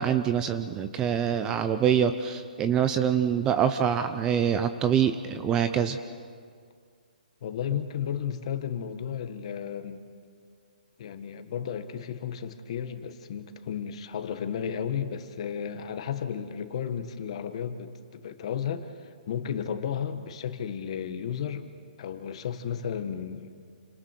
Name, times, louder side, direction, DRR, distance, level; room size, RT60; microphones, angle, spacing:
voice 1, 0.0-6.0, right 8 dB, 15° right, 10 dB, 0.5 m, -25 dB
voice 2, 7.4-10.1 11.0-21.6 22.0-23.6, left 8 dB, 40° left, 9 dB, 1.5 m, -33 dB
30.0 x 26.0 x 4.6 m, 2.1 s
hypercardioid pair, 165°, 5 cm